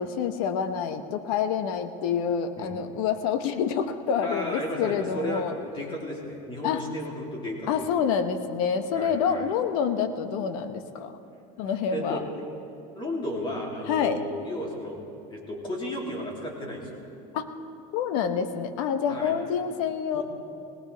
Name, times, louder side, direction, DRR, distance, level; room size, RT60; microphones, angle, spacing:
voice 1, 0.0-5.5 6.6-6.8 7.7-11.1 11.6-12.2 13.9-14.2 17.3-17.5 17.9-20.2, left 7 dB, 75° left, 8 dB, 1.1 m, -27 dB
voice 2, 4.2-7.8 8.9-9.5 11.9-12.2 12.9-15.0 15.3-17.0 19.1-19.4 20.1-20.2, left 1 dB, 25° left, -2 dB, 2.9 m, -34 dB
22.0 x 18.5 x 3.4 m, 2.9 s
cardioid pair, 145°, 18 cm